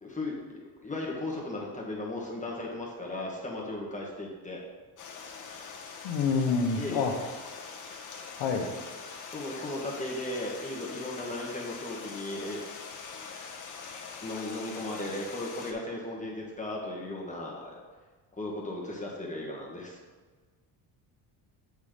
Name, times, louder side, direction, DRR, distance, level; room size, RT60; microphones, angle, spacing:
voice 1, 0.0-4.6 6.8-7.1 9.3-12.6 14.2-17.8 18.4-20.0, left 1 dB, 15° left, -4 dB, 1.4 m, -36 dB
Stream, 5.0-15.7, left 5 dB, 40° left, 1.2 m, -43 dB
voice 2, 6.0-7.1 8.4-8.7, left 5 dB, 75° left, 3 dB, 1.3 m, -27 dB
8.2 x 4.2 x 5.2 m, 1.4 s
cardioid pair, 115°, 47 cm